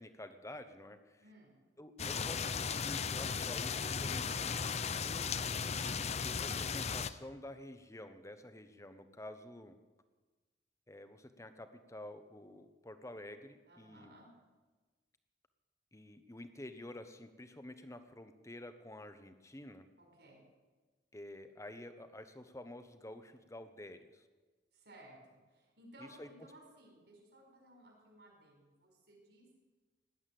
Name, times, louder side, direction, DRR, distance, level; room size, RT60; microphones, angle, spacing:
voice 1, 0.0-1.2 1.8-5.3 6.0-9.7 10.9-14.1 15.9-19.9 21.1-24.3 26.0-26.3, left 1 dB, 15° left, 9 dB, 1.0 m, -50 dB
voice 2, 1.2-1.5 13.7-14.3 20.0-20.4 24.7-29.5, right 1 dB, 65° right, 0 dB, 5.4 m, -59 dB
sound 1, 2.0-7.1, left 6 dB, 40° left, 0.6 m, -36 dB
16.5 x 11.0 x 7.8 m, 1.3 s
head